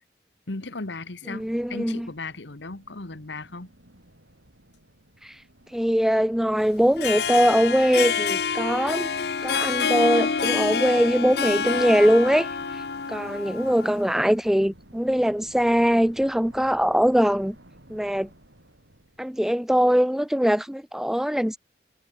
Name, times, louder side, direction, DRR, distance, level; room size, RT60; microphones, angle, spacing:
voice 1, 0.5-3.7, left 3 dB, 85° left, 1.6 m, -36 dB
voice 2, 1.3-2.1 5.2-5.3 5.7-9.1 9.4-12.5 13.1-17.6 17.9-18.3 19.2-21.6, equal, ahead, 0.3 m, -22 dB
sound 1, 1.4-19.8, right 1 dB, 90° right, 7.7 m, -54 dB
Harp, 6.8-14.2, left 6 dB, 65° left, 0.8 m, -27 dB
head